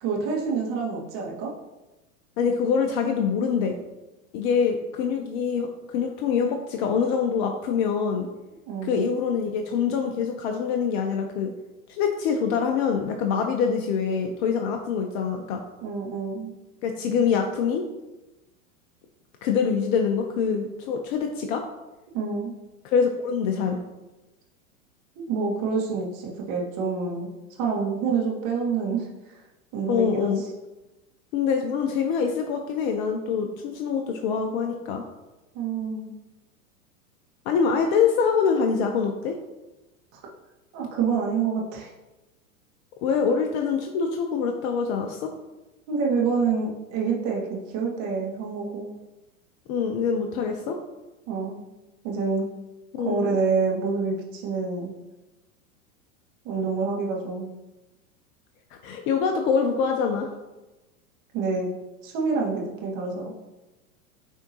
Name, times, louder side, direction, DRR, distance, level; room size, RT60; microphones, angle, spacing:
voice 1, 0.0-1.5 8.7-9.1 15.8-16.5 22.1-22.5 25.2-27.3 27.6-29.3 29.7-30.5 35.5-36.1 40.7-41.9 45.9-48.9 51.3-51.7 52.0-52.5 53.0-54.9 56.4-57.5 61.3-61.7 62.0-63.3, right 5 dB, 45° right, -2 dB, 1.9 m, -27 dB
voice 2, 2.4-3.8 4.3-8.3 8.8-11.5 11.9-15.6 16.8-17.8 19.4-21.6 22.8-23.8 29.9-30.4 31.3-35.0 37.5-39.4 43.0-45.2 49.7-50.8 52.9-53.4 58.8-60.3, left 6 dB, 50° left, 3 dB, 0.8 m, -25 dB
9.4 x 3.6 x 2.9 m, 1.0 s
hypercardioid pair, 105°, 44 cm